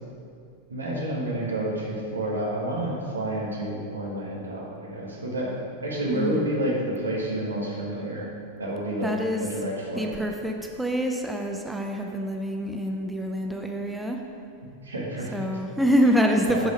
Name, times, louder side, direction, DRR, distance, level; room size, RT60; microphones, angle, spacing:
voice 1, 0.7-5.6 5.8-8.3 8.6-9.1 9.4-10.1 14.8-15.4 16.4-16.7, right 1 dB, 75° right, -3 dB, 1.8 m, -29 dB
voice 2, 6.1-6.5 9.0-9.5 9.9-14.2 15.3-16.7, equal, 5° right, 2 dB, 0.6 m, -26 dB
8.4 x 5.5 x 4.7 m, 2.4 s
figure-of-eight pair, 90°, 0 cm